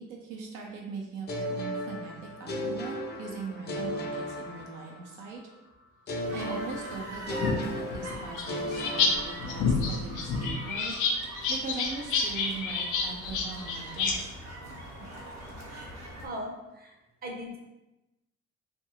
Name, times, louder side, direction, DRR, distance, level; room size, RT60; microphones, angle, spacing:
voice 1, 0.0-5.4 6.3-11.0 11.2-14.3, right 4 dB, 90° right, -1 dB, 0.6 m, -40 dB
sound 1, 1.3-5.2 6.1-9.9, left 1 dB, 35° left, 0.5 m, -36 dB
sound 2, 6.2-16.3, right 1 dB, 60° right, 0.9 m, -43 dB
sound 3, 7.4-9.1 9.4-14.1, left 5 dB, 85° left, 0.5 m, -29 dB
voice 2, 15.7-17.0 17.2-17.6, equal, 30° right, 0 dB, 0.6 m, -40 dB
2.5 x 2.3 x 2.9 m, 1.0 s
cardioid pair, 90°, 30 cm